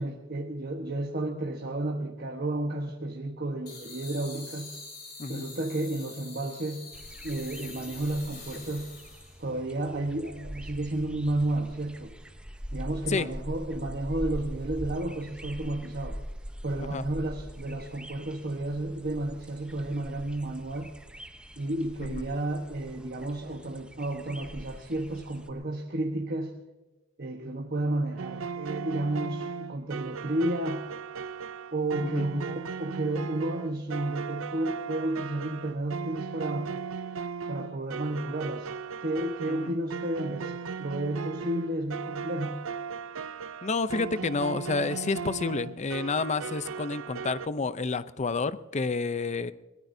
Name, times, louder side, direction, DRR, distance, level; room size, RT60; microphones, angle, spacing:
voice 1, 0.0-4.7 5.3-6.9 7.2-8.9 9.4-12.1 12.7-16.2 16.6-20.9 21.6-26.5 27.2-30.9 31.7-36.7 37.5-38.7 39.0-42.6, right 1 dB, 50° right, 2 dB, 1.2 m, -32 dB
sound 1, 3.7-9.4, left 4 dB, 55° left, 6.3 m, -45 dB
sound 2, 6.9-25.5, equal, 5° right, 0.8 m, -43 dB
sound 3, 28.2-47.5, right 6 dB, 90° right, 0.5 m, -37 dB
voice 2, 43.6-49.5, left 4 dB, 35° left, 14 dB, 0.6 m, -30 dB
23.0 x 18.5 x 2.7 m, 1.1 s
head